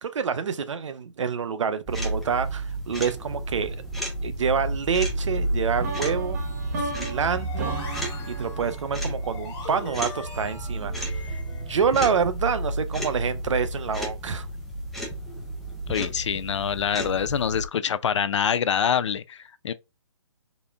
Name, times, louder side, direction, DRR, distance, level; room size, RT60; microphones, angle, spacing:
voice 1, 0.0-3.8 4.2-6.4 6.8-7.8 8.3-14.5, right 6 dB, 75° right, 0.7 m, -27 dB
sound 1, 1.9-17.7, right 1 dB, ahead, 0.5 m, -31 dB
sound 2, 5.8-9.8, right 3 dB, 35° right, 0.7 m, -36 dB
sound 3, 7.4-12.3, left 4 dB, 20° left, 1.2 m, -42 dB
voice 2, 15.9-19.7, left 8 dB, 70° left, 0.4 m, -25 dB
4.1 x 2.1 x 3.4 m
hypercardioid pair, 155°, 16 cm